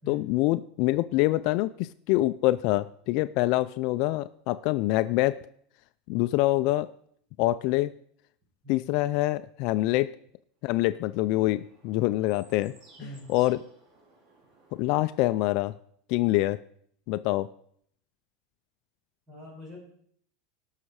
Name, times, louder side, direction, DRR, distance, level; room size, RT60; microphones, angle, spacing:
voice 1, 0.1-5.4 6.1-6.9 7.4-7.9 8.7-10.1 10.6-12.7 13.3-13.6 14.8-15.7 16.1-16.6 17.1-17.5, left 17 dB, 50° left, 13 dB, 0.4 m, -25 dB
sound 1, 10.7-15.5, right 2 dB, 40° right, 3.2 m, -59 dB
voice 2, 13.0-13.5 19.3-19.8, left 1 dB, 15° right, -1 dB, 4.7 m, -44 dB
18.0 x 6.4 x 4.8 m, 0.63 s
supercardioid pair, 155°, 0 cm